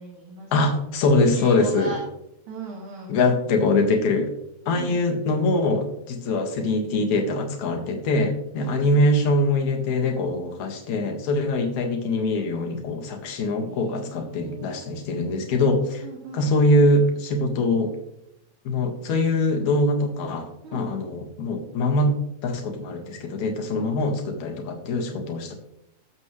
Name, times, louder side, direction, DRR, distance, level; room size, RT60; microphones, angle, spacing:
voice 1, 0.0-0.7 1.3-2.0 2.5-3.2 4.8-5.0 8.6-9.1 11.5-11.7 13.6-14.9 16.0-16.5 20.6-20.9 23.8-24.0, right 3 dB, 80° right, -2 dB, 3.5 m, -39 dB
voice 2, 0.5-1.9 3.1-4.3 4.7-16.0 16.3-17.9 18.6-25.5, left 2 dB, 70° left, 2 dB, 3.0 m, -23 dB
20.0 x 7.5 x 3.2 m, 0.82 s
omnidirectional pair, 3.4 m